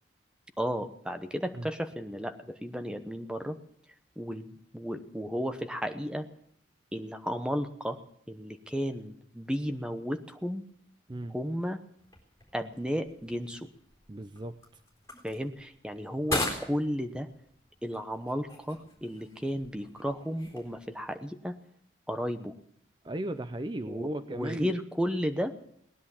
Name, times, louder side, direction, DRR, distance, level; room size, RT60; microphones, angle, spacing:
voice 1, 0.6-3.6 4.2-6.3 6.9-8.0 8.3-10.6 11.3-11.8 12.5-13.7 15.2-17.3 17.8-21.6 22.1-22.5 23.9-25.5, equal, 5° right, 7 dB, 1.0 m, -33 dB
sound 1, 12.0-21.2, left 2 dB, 15° left, 4.1 m, -41 dB
voice 2, 14.1-14.6 23.0-24.7, right 1 dB, 25° right, 10 dB, 0.5 m, -35 dB
19.0 x 10.5 x 7.2 m, 0.69 s
head